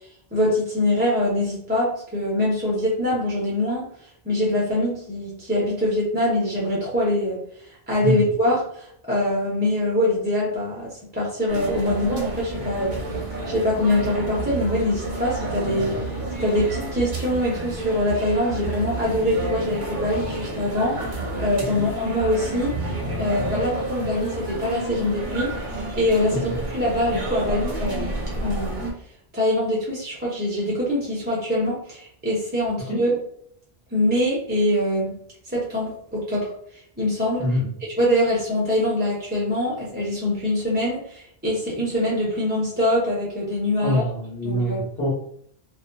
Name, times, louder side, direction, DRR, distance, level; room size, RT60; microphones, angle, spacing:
voice 1, 0.3-3.8 4.2-7.4 7.9-13.0 13.5-15.9 16.4-21.0 21.4-25.5 26.0-28.1 28.4-28.9 29.3-33.1 33.9-35.2 35.5-36.5 37.0-37.4 38.0-44.0 44.4-44.8, left 1 dB, 15° right, -5 dB, 0.5 m, -23 dB
sound 1, 11.5-28.9, right 2 dB, 55° right, 0.7 m, -30 dB
voice 2, 37.4-37.7 43.8-45.1, equal, 70° left, -3 dB, 1.1 m, -24 dB
2.7 x 2.3 x 2.2 m, 0.66 s
omnidirectional pair, 1.0 m